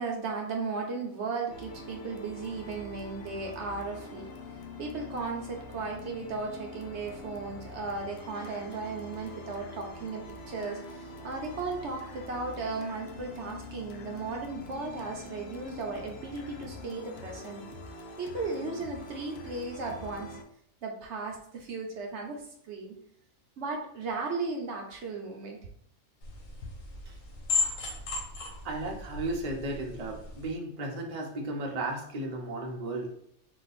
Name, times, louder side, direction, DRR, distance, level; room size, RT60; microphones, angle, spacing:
voice 1, 0.0-4.3 4.8-17.7 18.2-20.4 20.8-22.9 23.6-25.7, right 4 dB, 65° right, 1 dB, 0.9 m, -36 dB
sound 1, 1.5-20.4, left 2 dB, 60° left, 0.8 m, -44 dB
sound 2, 26.2-30.5, left 4 dB, 85° left, 1.4 m, -35 dB
voice 2, 28.6-33.1, right 2 dB, 40° right, 0 dB, 0.7 m, -34 dB
3.9 x 2.4 x 4.0 m, 0.68 s
omnidirectional pair, 1.3 m